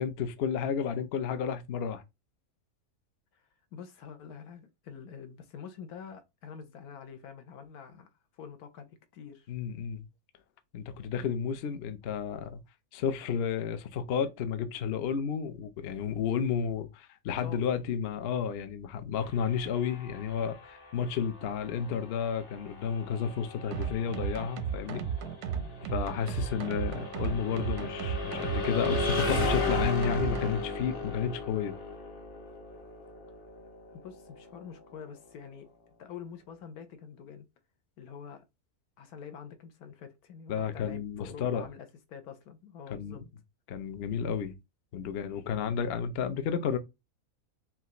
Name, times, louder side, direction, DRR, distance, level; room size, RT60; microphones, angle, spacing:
voice 1, 0.0-2.0 9.5-10.0 10.7-12.6 12.9-25.1 25.6-31.8 40.5-41.7 42.9-43.2 43.7-44.5 44.9-46.8, left 7 dB, 60° left, 0.7 m, -32 dB
voice 2, 3.7-8.1 8.3-9.5 17.4-17.6 34.0-35.7 36.0-37.4 38.0-38.4 39.0-43.2, left 7 dB, 80° left, 1.3 m, -46 dB
sound 1, 19.2-35.0, left 3 dB, 40° left, 1.0 m, -36 dB
sound 2, 23.7-30.5, right 8 dB, 65° right, 0.7 m, -35 dB
5.6 x 2.5 x 2.9 m
omnidirectional pair, 1.6 m